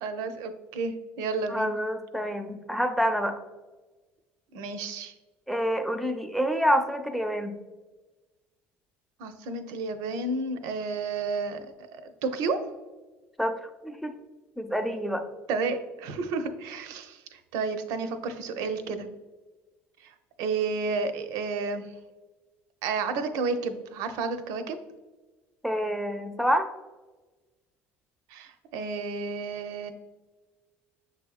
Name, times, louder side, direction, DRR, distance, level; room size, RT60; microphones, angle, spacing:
voice 1, 0.0-1.7 4.5-5.1 9.2-12.6 15.5-19.1 20.0-21.9 22.8-24.8 28.3-29.9, right 4 dB, 70° right, 9 dB, 0.5 m, -31 dB
voice 2, 1.5-3.4 5.5-7.5 13.4-14.1 14.6-15.3 25.6-26.7, equal, ahead, 5 dB, 0.6 m, -27 dB
6.7 x 2.8 x 2.3 m, 1.2 s
hypercardioid pair, 70°, 6 cm